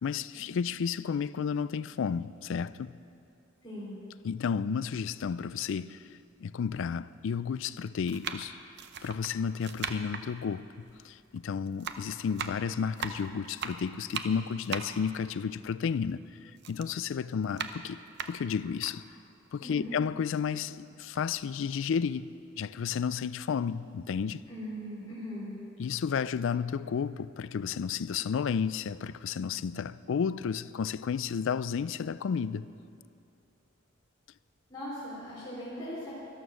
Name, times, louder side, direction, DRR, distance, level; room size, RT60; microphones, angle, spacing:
voice 1, 0.0-2.9 4.2-8.6 9.0-18.0 18.3-19.0 19.5-24.4 25.8-32.7, left 6 dB, 65° left, 0.4 m, -32 dB
voice 2, 3.6-4.0 19.6-19.9 24.5-25.5 34.7-36.1, equal, 20° left, 3.6 m, -39 dB
sound 1, 5.2-5.3 6.2-6.3 7.3-7.5 8.0-11.4 11.7-16.2 16.6-19.0 19.5-19.6 19.9-20.8 21.1-21.3, right 6 dB, 55° right, 0.7 m, -39 dB
13.0 x 12.5 x 6.2 m
head